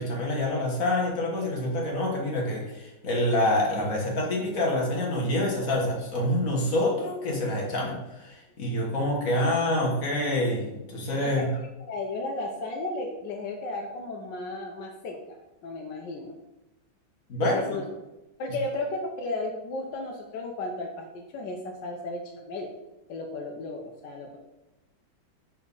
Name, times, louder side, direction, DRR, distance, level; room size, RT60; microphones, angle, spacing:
voice 1, 0.0-11.4 17.3-17.6, left 1 dB, 45° left, -1 dB, 1.8 m, -27 dB
voice 2, 11.2-16.3 17.4-17.8 18.4-22.7 23.1-24.4, left 2 dB, 70° left, 1 dB, 1.4 m, -34 dB
5.8 x 4.4 x 5.4 m, 1.0 s
omnidirectional pair, 2.1 m